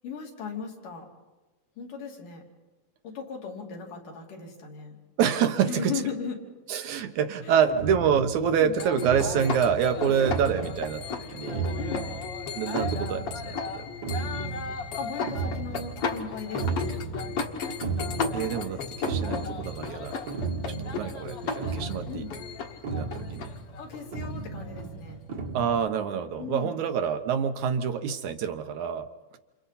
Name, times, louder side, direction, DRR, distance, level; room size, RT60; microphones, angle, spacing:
voice 1, 0.0-1.1 1.8-2.4 3.0-5.0 5.7-6.4 7.4-7.6 8.4-8.8 9.9-10.1 11.8-12.1 15.0-17.5 19.0-19.2 22.1-22.3 23.8-25.2 26.4-26.8, left 5 dB, 75° left, 0 dB, 4.5 m, -37 dB
voice 2, 5.2-5.9 6.7-11.7 12.6-13.9 18.3-20.2 20.6-22.3 22.9-23.5 25.5-29.1, right 8 dB, 70° right, 7 dB, 2.3 m, -27 dB
sound 1, 7.7-25.9, right 4 dB, 40° right, 1.6 m, -35 dB
sound 2, 8.8-25.1, left 5 dB, 50° left, 2.3 m, -35 dB
29.5 x 28.5 x 4.2 m, 1.2 s
omnidirectional pair, 3.7 m